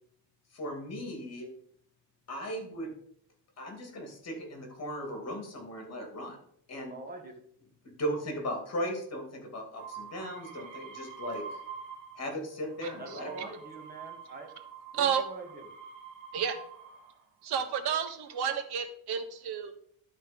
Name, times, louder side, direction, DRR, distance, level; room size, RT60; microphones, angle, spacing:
voice 1, 0.5-1.5 2.3-2.9 3.6-6.4 6.7-7.0 8.0-11.4 12.2-13.5, equal, 35° left, 3 dB, 3.0 m, -37 dB
voice 2, 6.9-7.3 13.0-14.5 14.9-15.7, right 3 dB, 20° right, 2 dB, 2.0 m, -44 dB
sound 1, 9.8-12.3 12.7-17.2 18.0-18.6, right 6 dB, 85° right, 2.8 m, -46 dB
voice 3, 17.4-19.7, right 7 dB, 60° right, 6 dB, 1.5 m, -31 dB
12.0 x 4.3 x 5.4 m, 0.65 s
cardioid pair, 125°, 43 cm